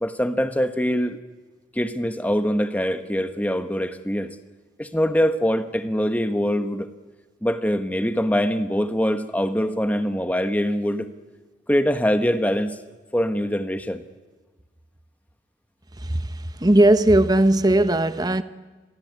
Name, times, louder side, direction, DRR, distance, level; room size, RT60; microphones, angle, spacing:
voice 1, 0.0-1.2 1.7-4.3 4.8-6.9 7.4-11.1 11.7-12.8 13.1-14.0, equal, 10° left, 1.3 m, -23 dB
voice 2, 16.6-18.4, right 1 dB, 20° right, 1.0 m, -17 dB
29.5 x 23.0 x 8.3 m
head